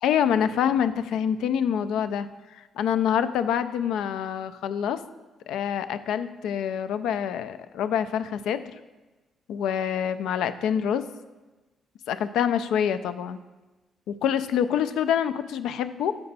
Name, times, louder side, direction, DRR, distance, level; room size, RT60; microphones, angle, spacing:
voice 1, 0.0-5.0 5.5-8.7 9.5-11.0 12.1-13.4 14.1-16.1, left 8 dB, 85° left, 11 dB, 0.3 m, -26 dB
6.7 x 5.2 x 4.0 m, 1.2 s
cardioid pair, 90°, 0 cm